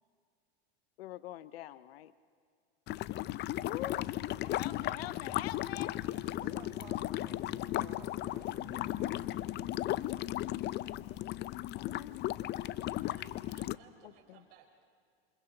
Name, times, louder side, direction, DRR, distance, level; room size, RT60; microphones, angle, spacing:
voice 1, 1.0-2.1 3.6-6.0 11.7-12.2 14.0-14.4, left 14 dB, 80° left, 15 dB, 0.7 m, -45 dB
sound 1, 2.9-13.7, left 15 dB, 35° left, 0.5 m, -36 dB
sound 2, 3.2-13.2, right 1 dB, 10° right, 6.3 m, -58 dB
voice 2, 6.4-9.8, right 8 dB, 85° right, 5 dB, 1.4 m, -56 dB
voice 3, 12.6-14.8, right 5 dB, 65° right, 3 dB, 4.5 m, -61 dB
28.5 x 27.5 x 3.9 m, 2.2 s
hypercardioid pair, 100°, 30 cm